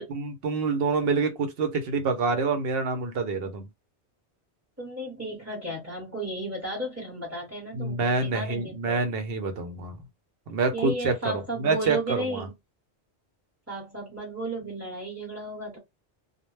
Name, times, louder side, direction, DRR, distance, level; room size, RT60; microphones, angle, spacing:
voice 1, 0.0-3.7 7.7-10.0 10.5-12.5, right 4 dB, 60° right, 0.9 m, -27 dB
voice 2, 4.8-9.1 10.7-12.5 13.7-15.8, right 1 dB, 15° right, 0.9 m, -34 dB
2.2 x 2.1 x 3.1 m
omnidirectional pair, 1.1 m